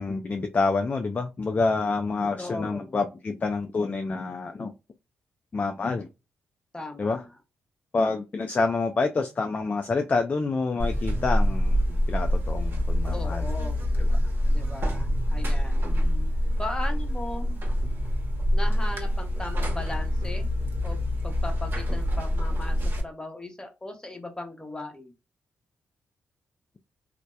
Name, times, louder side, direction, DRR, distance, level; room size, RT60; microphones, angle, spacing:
voice 1, 0.0-4.7 5.5-6.1 7.0-7.2 7.9-13.5 15.8-16.3, left 3 dB, 35° left, 0.3 m, -28 dB
voice 2, 2.4-3.0 6.7-7.2 13.1-14.0 14.5-15.9 16.6-17.6 18.5-20.5 20.8-25.1, left 2 dB, 15° left, 0.8 m, -38 dB
Buzz, 10.8-23.0, equal, 50° right, 0.8 m, -26 dB
2.7 x 2.1 x 2.2 m
supercardioid pair, 60°, 5 cm